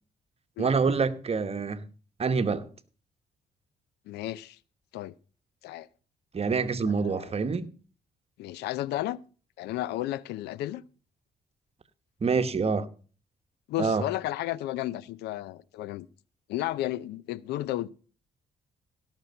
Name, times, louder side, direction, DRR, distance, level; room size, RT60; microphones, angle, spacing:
voice 1, 0.6-1.9 2.2-2.7 6.3-7.7 12.2-12.9 13.8-14.1, right 5 dB, 40° right, 1.1 m, -26 dB
voice 2, 4.1-4.6 4.9-5.1 5.6-5.9 6.9-7.3 8.4-9.2 9.6-10.8 13.7-16.1 16.5-17.9, left 14 dB, 90° left, 0.5 m, -33 dB
17.0 x 6.2 x 5.4 m
cardioid pair, 70°, 17 cm